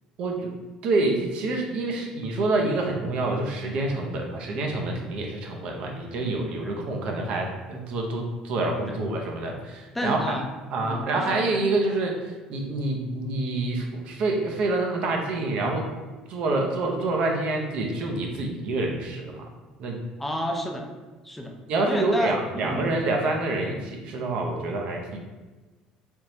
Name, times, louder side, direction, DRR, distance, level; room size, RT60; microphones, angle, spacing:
voice 1, 0.2-0.5 0.8-10.4 10.7-15.9 16.3-19.4 19.8-20.0 21.7-25.2, right 2 dB, 55° right, 1 dB, 0.6 m, -27 dB
voice 2, 9.9-10.5 10.8-11.4 20.2-20.9 21.2-21.6 21.9-22.9, equal, 5° left, 2 dB, 0.4 m, -30 dB
3.5 x 3.0 x 2.7 m, 1.2 s
cardioid pair, 140°, 2 cm